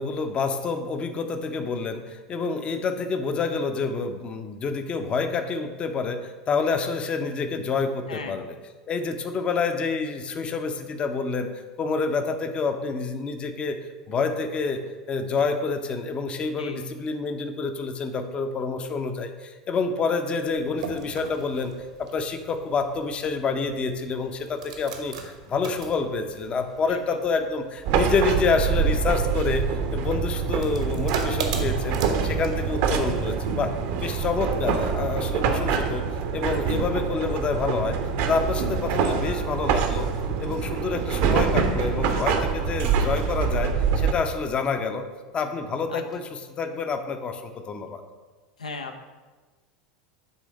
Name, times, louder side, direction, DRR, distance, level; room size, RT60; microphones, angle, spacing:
voice 1, 0.0-8.5 8.9-11.5 11.8-13.8 14.1-14.8 15.1-21.7 22.0-29.6 29.9-33.7 34.0-36.0 36.3-38.0 38.3-40.1 40.4-45.0 45.3-48.0, left 4 dB, 30° left, 7 dB, 0.6 m, -28 dB
sound 1, 20.5-33.5, right 5 dB, 65° right, 0.9 m, -41 dB
sound 2, 27.8-44.1, right 6 dB, 50° right, 0.7 m, -25 dB
voice 2, 45.9-46.2 48.6-49.0, left 4 dB, 75° left, 6 dB, 0.5 m, -36 dB
8.0 x 3.4 x 5.1 m, 1.3 s
figure-of-eight pair, 80°, 4 cm